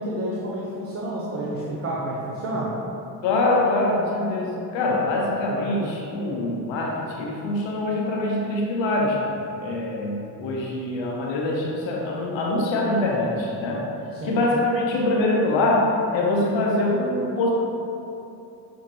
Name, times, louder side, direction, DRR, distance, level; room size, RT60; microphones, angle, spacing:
voice 1, 0.0-2.7 14.2-14.4, right 1 dB, 30° right, -5 dB, 0.6 m, -29 dB
voice 2, 3.2-13.9 14.2-17.5, left 2 dB, 70° left, -1 dB, 0.8 m, -24 dB
5.9 x 2.2 x 2.8 m, 2.8 s
hypercardioid pair, 50°, 47 cm